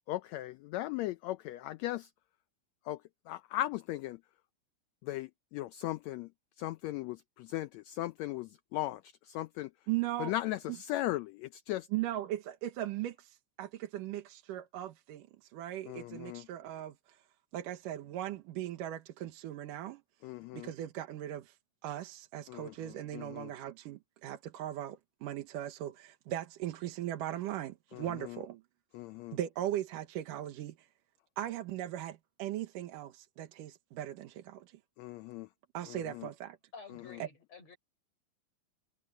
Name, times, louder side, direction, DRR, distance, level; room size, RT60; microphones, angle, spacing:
voice 1, 0.1-2.1 2.9-3.0 3.3-4.2 5.0-6.3 6.6-9.7 10.2-11.9 15.9-16.5 20.2-20.7 22.5-23.5 27.9-28.4 28.9-29.4 35.0-35.5 35.9-36.3, left 15 dB, 90° left, 1.5 m, -38 dB
voice 2, 9.9-10.3 11.9-17.2 17.5-20.0 20.5-21.6 21.8-28.6 29.3-30.9 31.4-34.8 35.7-36.6 37.2-37.3, right 13 dB, 85° right, 2.8 m, -38 dB
voice 3, 36.7-37.8, left 4 dB, 50° left, 5.8 m, -51 dB
omnidirectional pair, 3.7 m